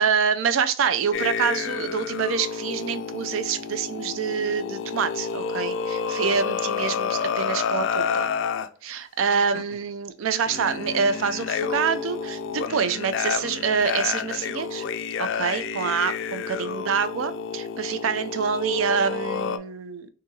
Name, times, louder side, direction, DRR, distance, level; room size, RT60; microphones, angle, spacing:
voice 1, 0.0-8.3 8.8-14.9 15.2-20.1, right 6 dB, 85° right, 11 dB, 0.4 m, -26 dB
sound 1, 1.1-8.7 9.5-9.8 10.4-19.6, left 6 dB, 65° left, 0.3 m, -29 dB
3.8 x 2.6 x 2.7 m, 0.41 s
head